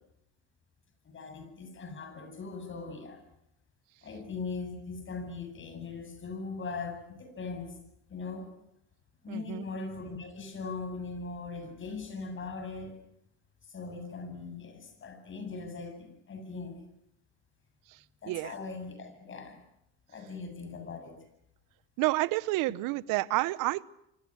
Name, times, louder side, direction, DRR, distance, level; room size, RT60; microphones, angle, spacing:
voice 1, 1.0-3.2 4.0-7.8 8.1-8.5 9.2-13.0 13.6-16.8 18.2-19.6 20.1-21.2, left 4 dB, 35° left, 7 dB, 8.0 m, -40 dB
voice 2, 9.3-9.7 17.9-18.5 22.0-23.8, right 20 dB, 65° right, 19 dB, 1.0 m, -30 dB
28.0 x 25.0 x 6.4 m, 0.79 s
supercardioid pair, 100°, 35 cm